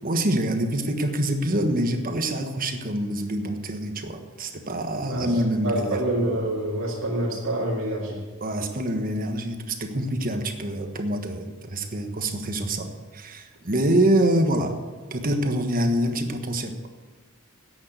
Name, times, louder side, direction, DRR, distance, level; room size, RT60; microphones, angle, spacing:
voice 1, 0.0-6.0 8.4-14.8 15.1-16.8, right 1 dB, 40° right, 6 dB, 1.3 m, -25 dB
voice 2, 5.6-8.2, right 1 dB, 65° right, -4 dB, 2.3 m, -26 dB
10.5 x 8.6 x 8.1 m, 1.4 s
head